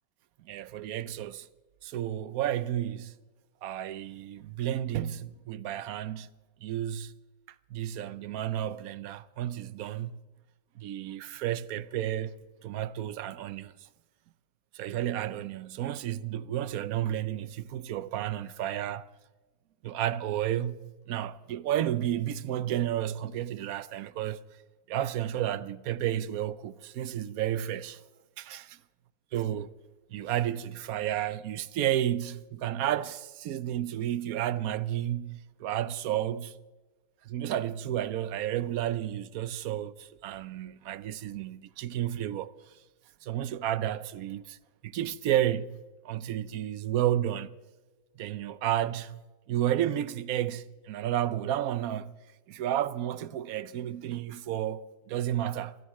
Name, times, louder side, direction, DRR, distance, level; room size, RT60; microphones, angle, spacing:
voice 1, 0.5-1.5 1.8-3.2 3.6-6.3 6.6-7.1 7.7-10.2 10.8-12.3 12.6-13.7 14.7-19.1 19.8-24.4 24.9-28.0 28.4-28.8 29.3-29.7 30.1-36.6 37.2-42.5 43.2-44.6 44.8-45.8 46.0-47.5 48.2-49.2 49.5-52.1 52.5-55.8, right 11 dB, 75° right, 1.1 m, -32 dB
29.0 x 14.0 x 3.1 m
omnidirectional pair, 1.6 m